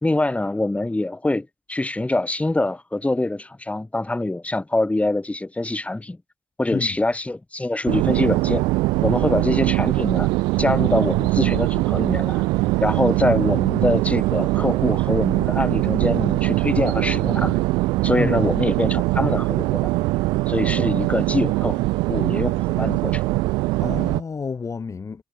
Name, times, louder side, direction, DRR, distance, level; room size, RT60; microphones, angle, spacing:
voice 1, 0.0-6.2 6.6-8.6 9.0-10.3 10.6-12.4 12.8-17.6 18.0-19.9 20.5-21.8 22.1-23.3, left 2 dB, 15° left, 4.4 m, -24 dB
sound 1, 7.9-24.2, right 22 dB, 85° right, 0.8 m, -22 dB
voice 2, 23.8-25.2, left 5 dB, 45° left, 3.7 m, -29 dB
hypercardioid pair, 45°, 7 cm